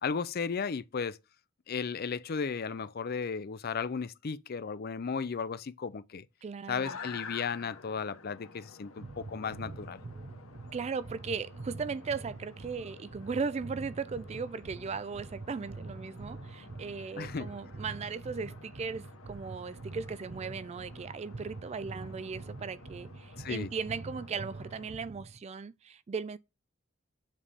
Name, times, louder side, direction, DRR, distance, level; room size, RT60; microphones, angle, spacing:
voice 1, 0.0-1.2 1.7-6.3 6.7-10.0 17.2-17.5 23.4-23.7, left 5 dB, 50° left, 0.5 m, -35 dB
voice 2, 6.4-7.0 10.7-26.4, right 5 dB, 30° right, 0.3 m, -37 dB
sound 1, 6.8-24.9, left 5 dB, 85° left, 1.0 m, -51 dB
sound 2, 9.0-25.4, right 3 dB, 50° right, 0.7 m, -45 dB
7.3 x 3.4 x 5.6 m
head